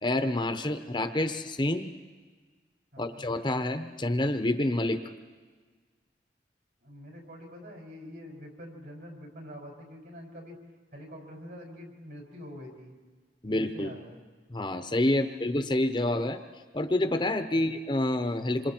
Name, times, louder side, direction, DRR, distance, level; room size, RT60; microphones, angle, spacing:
voice 1, 0.0-1.9 3.0-5.0 13.4-13.9 14.5-16.4 16.7-18.7, left 1 dB, 25° left, 8 dB, 0.9 m, -28 dB
voice 2, 2.9-3.2 6.8-10.6 10.9-13.0 13.4-14.2 15.1-15.4 17.5-17.8, equal, 60° right, 0 dB, 5.8 m, -46 dB
27.0 x 26.0 x 4.5 m, 1.4 s
head